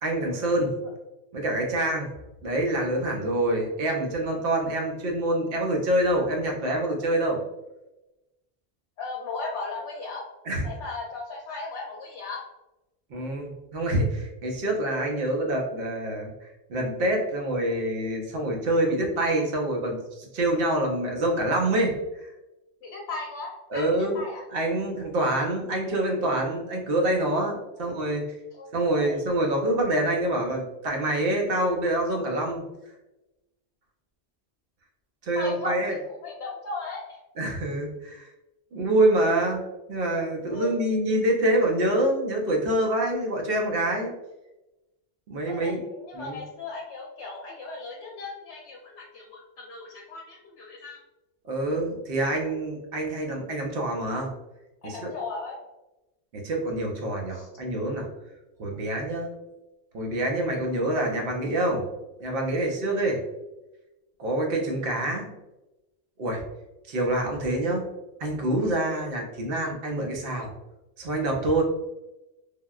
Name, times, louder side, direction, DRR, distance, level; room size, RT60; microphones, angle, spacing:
voice 1, 0.0-0.7 1.3-2.1 2.4-7.4 10.5-10.7 13.1-22.0 22.2-22.3 23.7-24.2 24.5-28.2 28.7-32.6 35.2-36.0 37.4-38.3 38.7-39.6 39.9-44.1 45.3-45.8 46.1-46.4 51.5-54.3 54.8-55.1 56.3-58.1 58.6-59.3 59.9-61.8 62.2-63.2 64.2-65.3 66.2-66.4 66.9-67.8 68.2-70.5 71.0-71.6, right 1 dB, 60° right, 0 dB, 0.8 m, -26 dB
voice 2, 9.0-10.3 10.6-12.4 22.8-24.4 28.5-29.1 31.2-31.3 35.4-37.2 40.5-40.8 45.5-51.0 54.8-55.6 57.3-57.5, left 3 dB, 80° left, -2 dB, 0.8 m, -37 dB
3.5 x 2.2 x 2.3 m, 1.0 s
omnidirectional pair, 1.1 m